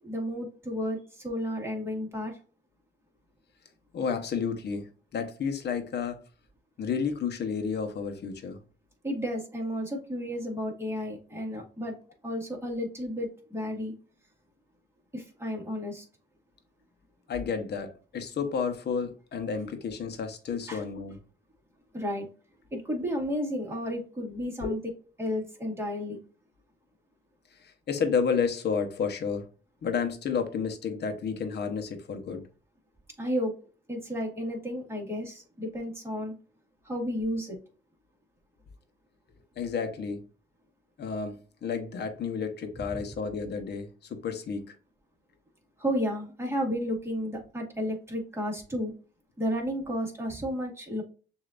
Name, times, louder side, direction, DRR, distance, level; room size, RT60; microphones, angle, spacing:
voice 1, 0.0-2.4 9.0-12.0 12.2-13.9 15.1-16.0 20.7-20.8 21.9-22.3 22.7-24.8 25.2-26.2 33.2-33.5 33.9-36.3 36.8-37.6 45.8-48.9 49.4-51.0, equal, 15° right, 1.9 m, -32 dB
voice 2, 3.9-6.2 6.8-8.6 17.3-21.2 24.6-24.7 27.6-29.5 29.8-32.5 39.6-40.2 41.0-44.7, left 6 dB, 60° left, 1.0 m, -31 dB
6.6 x 2.8 x 2.5 m
cardioid pair, 90°, 20 cm